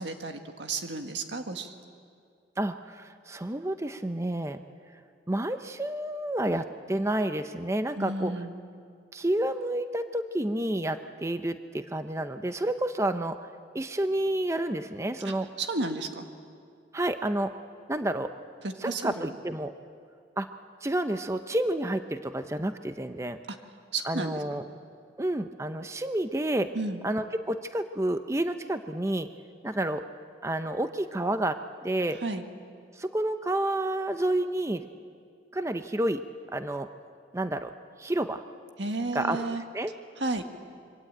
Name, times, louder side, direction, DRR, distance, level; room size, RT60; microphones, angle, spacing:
voice 1, 0.0-1.7 8.0-8.5 15.2-16.2 18.6-19.3 23.5-23.6 23.9-24.6 26.7-27.0 32.2-32.4 38.8-39.6 40.2-40.4, right 2 dB, 75° right, 5 dB, 1.8 m, -32 dB
voice 2, 2.6-4.6 5.3-8.3 9.1-13.4 13.7-15.5 16.9-17.5 17.9-18.3 18.8-19.7 20.4-20.5 20.8-23.4 24.1-24.6 25.2-26.7 27.0-29.3 29.6-30.0 30.4-31.6 31.8-32.2 33.0-34.8 35.5-36.9 37.3-37.7 38.0-38.4 39.1-39.4 39.7-39.9, right 1 dB, 15° right, 9 dB, 0.7 m, -29 dB
26.5 x 24.0 x 8.8 m, 2.2 s
head